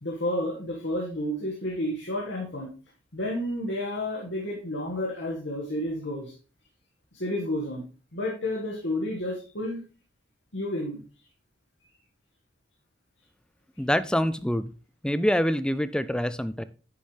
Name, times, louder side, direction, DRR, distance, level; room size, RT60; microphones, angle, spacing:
voice 1, 0.0-2.7 3.1-6.3 7.1-7.8 8.1-9.8 10.5-11.0, left 1 dB, 85° left, -2 dB, 1.8 m, -31 dB
voice 2, 13.8-14.7 15.0-16.6, equal, 5° left, 14 dB, 0.4 m, -25 dB
9.6 x 6.8 x 3.3 m, 0.35 s
head